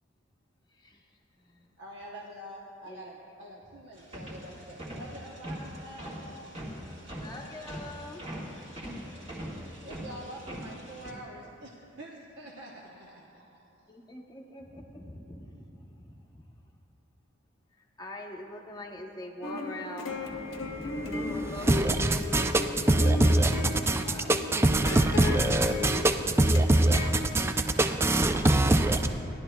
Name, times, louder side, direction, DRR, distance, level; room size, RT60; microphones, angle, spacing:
voice 1, 0.7-1.1 1.4-1.7 2.9-3.1 7.2-8.3 13.9-16.5 17.7-20.3 21.0-21.7 22.6-24.5, left 1 dB, 20° left, 0.8 m, -44 dB
voice 2, 1.8-6.4 6.9-7.0 9.8-13.6, right 1 dB, 60° right, 0.9 m, -46 dB
sound 1, 3.9-11.1, equal, 30° right, 1.7 m, -41 dB
sound 2, 19.4-27.4, left 3 dB, 70° left, 0.8 m, -36 dB
voice 3, 20.6-29.1, right 1 dB, 10° right, 0.3 m, -24 dB
17.5 x 11.5 x 2.2 m
head